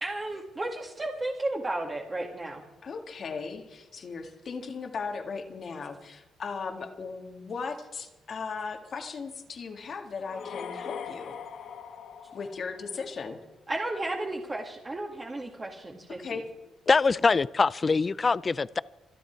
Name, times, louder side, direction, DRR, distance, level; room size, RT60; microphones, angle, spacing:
voice 1, 0.0-2.6 13.7-16.2, right 2 dB, 25° right, 0 dB, 2.1 m, -33 dB
voice 2, 2.8-11.4 12.3-13.4 16.1-16.5, left 5 dB, 50° left, 4 dB, 1.8 m, -37 dB
sound 1, 10.2-13.2, left 7 dB, 70° left, 1.7 m, -41 dB
voice 3, 16.9-18.8, left 4 dB, 30° left, 19 dB, 0.4 m, -23 dB
26.5 x 10.0 x 4.6 m, 1.1 s
cardioid pair, 90°, 0 cm